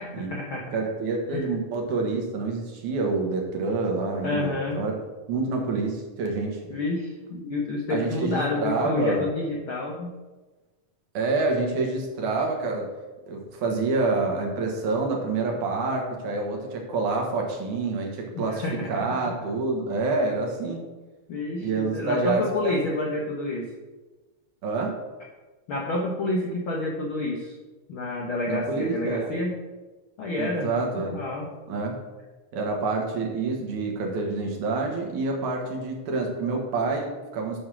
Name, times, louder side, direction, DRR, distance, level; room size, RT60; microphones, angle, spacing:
voice 1, 0.0-0.8 1.3-1.4 4.2-4.8 6.7-10.1 18.3-19.3 21.3-23.7 25.7-27.5 27.9-29.6 30.2-30.7 31.0-31.5, left 2 dB, 70° left, -1 dB, 1.2 m, -29 dB
voice 2, 0.7-4.9 5.3-6.6 7.9-9.2 11.1-12.9 13.3-20.8 21.6-23.1 24.6-24.9 28.5-29.3 30.4-31.2 31.7-32.0 32.5-37.6, right 3 dB, 70° right, 1 dB, 2.8 m, -27 dB
8.3 x 5.6 x 6.2 m, 1.2 s
omnidirectional pair, 3.7 m